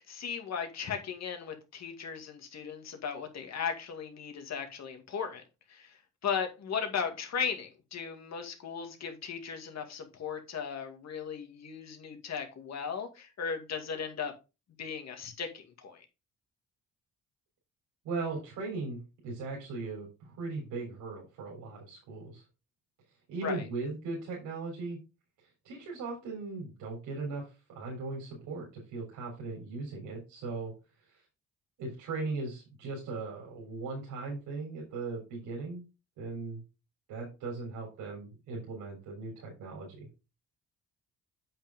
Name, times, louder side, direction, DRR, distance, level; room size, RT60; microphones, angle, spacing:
voice 1, 0.0-5.4 5.7-14.3 14.8-16.1 23.4-23.7, left 6 dB, 60° left, 2.2 m, -37 dB
voice 2, 18.0-22.4 23.3-25.0 25.6-27.4 27.7-30.7 31.1-31.2 31.8-35.8 36.2-36.6 37.1-40.1, right 3 dB, 90° right, 3.8 m, -38 dB
8.2 x 6.2 x 3.6 m
cardioid pair, 90°, 30 cm